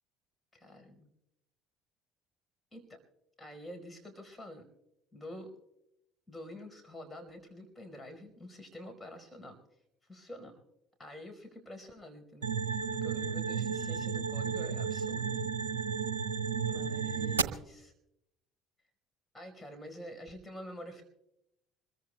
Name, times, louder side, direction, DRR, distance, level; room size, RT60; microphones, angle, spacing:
voice 1, 0.5-1.1 2.7-3.0 3.4-4.7 5.1-5.5 6.3-9.6 10.1-10.6 11.0-15.5 16.6-17.9 19.3-21.0, equal, 15° left, 5 dB, 4.7 m, -47 dB
sound 1, 12.4-17.4, right 6 dB, 80° right, 0.6 m, -33 dB
26.0 x 22.0 x 2.3 m, 0.84 s
figure-of-eight pair, 60°, 0 cm